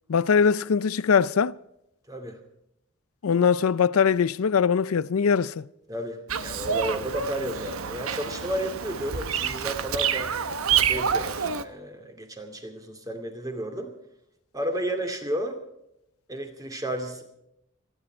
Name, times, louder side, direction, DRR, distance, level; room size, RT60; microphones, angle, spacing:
voice 1, 0.1-1.5 3.2-5.7, left 6 dB, 85° left, 0.5 m, -21 dB
voice 2, 2.1-2.4 5.9-10.3 10.8-13.9 14.5-15.6 16.3-17.2, right 1 dB, 15° right, 2.4 m, -32 dB
Bird vocalization bird call bird song, 6.3-11.6, right 7 dB, 85° right, 1.0 m, -28 dB
27.0 x 10.0 x 4.5 m
head